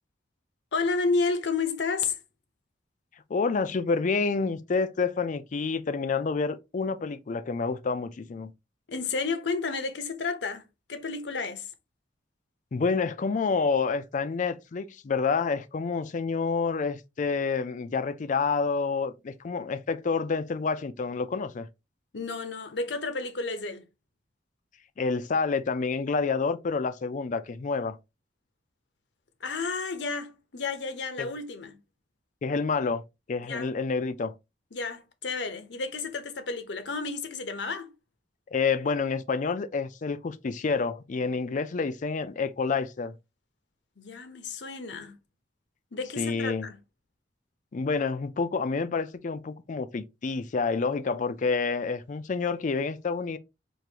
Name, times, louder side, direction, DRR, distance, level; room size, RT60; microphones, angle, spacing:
voice 1, 0.7-2.2 8.9-11.7 22.1-23.9 29.4-31.8 33.4-33.7 34.7-37.9 44.0-45.1 45.9-46.8, left 4 dB, 70° left, 0.7 m, -31 dB
voice 2, 3.3-8.5 12.7-21.7 25.0-28.0 31.2-31.3 32.4-33.0 33.3-34.3 38.5-43.1 46.2-46.7 47.7-53.4, left 4 dB, 45° left, 0.4 m, -28 dB
4.6 x 2.5 x 2.8 m
head